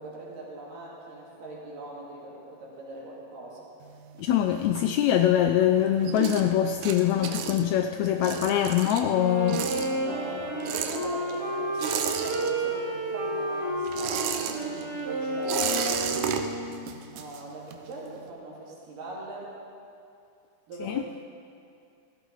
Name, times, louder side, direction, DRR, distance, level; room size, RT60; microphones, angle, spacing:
voice 1, 0.0-3.7 9.8-16.7 17.1-19.5 20.7-21.2, right 2 dB, 90° right, -5 dB, 4.2 m, -41 dB
sound 1, 3.8-5.4 5.7-13.0 13.2-17.9, right 8 dB, 75° right, 2.0 m, -33 dB
voice 2, 4.2-9.7 20.8-21.0, left 11 dB, 90° left, 6 dB, 1.6 m, -23 dB
Wind instrument woodwind instrument, 9.1-16.8, right 1 dB, 10° right, 1.5 m, -31 dB
16.5 x 15.0 x 4.0 m, 2.5 s
omnidirectional pair, 3.7 m